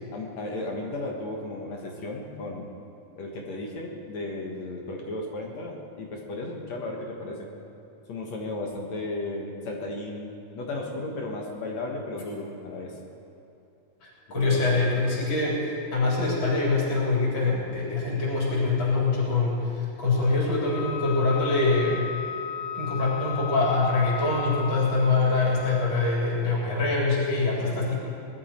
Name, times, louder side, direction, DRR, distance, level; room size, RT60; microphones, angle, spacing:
voice 1, 0.1-2.7 3.2-7.5 8.1-13.0 14.3-14.6 27.6-27.8, left 2 dB, 55° left, 0 dB, 2.3 m, -35 dB
voice 2, 14.0-22.0 22.7-28.0, left 3 dB, 35° left, -5 dB, 4.5 m, -24 dB
Wind instrument woodwind instrument, 20.6-25.8, left 9 dB, 85° left, 2.8 m, -36 dB
21.0 x 12.5 x 4.4 m, 2.8 s
omnidirectional pair, 4.1 m